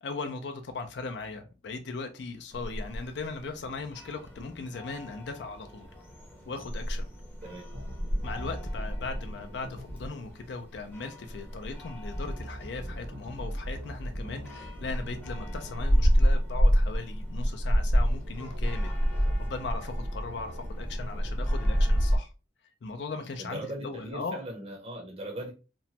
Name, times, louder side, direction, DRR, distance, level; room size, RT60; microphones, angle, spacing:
voice 1, 0.0-5.9 6.5-7.1 8.2-22.3 22.8-24.4, left 3 dB, 70° left, 0.4 m, -38 dB
sound 1, 2.5-22.2, equal, 10° left, 0.6 m, -30 dB
sound 2, 7.7-10.1 12.1-16.1 18.1-22.1, equal, 80° right, 0.9 m, -39 dB
voice 2, 23.4-25.5, right 1 dB, 35° right, 0.6 m, -39 dB
3.0 x 2.1 x 2.7 m
head